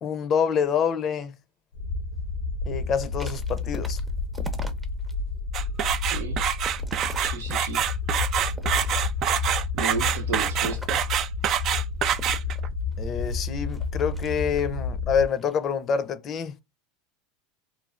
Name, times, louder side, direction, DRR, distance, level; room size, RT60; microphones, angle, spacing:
voice 1, 0.0-1.3 2.6-4.0 13.0-16.5, left 7 dB, 40° left, 0.5 m, -26 dB
sound 1, 1.7-15.3, left 4 dB, 85° left, 0.6 m, -30 dB
sound 2, 2.9-5.1 5.6-7.9 8.4-9.3 9.8-11.1 12.1-14.8 15.3-15.6, right 1 dB, 10° right, 0.6 m, -44 dB
sound 3, 5.5-12.7, right 10 dB, 45° right, 0.3 m, -26 dB
voice 2, 7.2-7.8 9.7-11.0, right 3 dB, 75° right, 0.7 m, -33 dB
3.1 x 2.3 x 2.4 m
hypercardioid pair, 90°, 0 cm